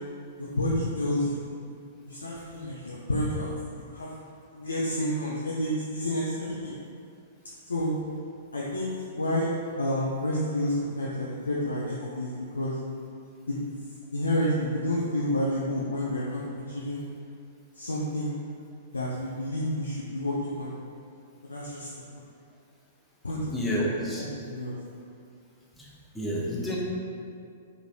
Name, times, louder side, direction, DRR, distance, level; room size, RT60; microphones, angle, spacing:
voice 1, 0.4-1.4 2.1-3.5 3.9-4.1 4.5-6.7 7.7-7.9 8.5-9.5 9.8-12.8 13.5-13.6 14.1-16.4 16.7-17.0 17.7-18.4 18.9-20.7 21.4-22.2 23.2-23.8 24.4-24.8, left 1 dB, 85° left, -6 dB, 0.3 m, -29 dB
voice 2, 23.5-24.2 25.8-26.8, equal, 5° left, -5 dB, 0.5 m, -30 dB
3.1 x 2.4 x 2.3 m, 2.4 s
figure-of-eight pair, 110°, 0 cm